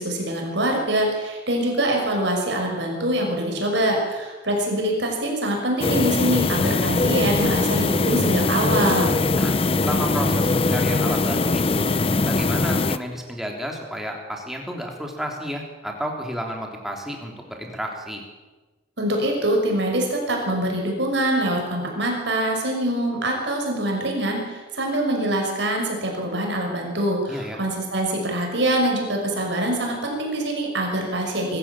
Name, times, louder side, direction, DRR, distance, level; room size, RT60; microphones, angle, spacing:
voice 1, 0.0-9.2 19.0-31.6, right 1 dB, 60° right, 1 dB, 6.0 m, -24 dB
sound 1, 5.8-13.0, left 3 dB, 30° left, 0.6 m, -21 dB
voice 2, 9.8-11.9 12.3-18.2 27.3-27.6, equal, ahead, 1 dB, 3.4 m, -31 dB
24.0 x 14.0 x 8.6 m, 1.2 s
head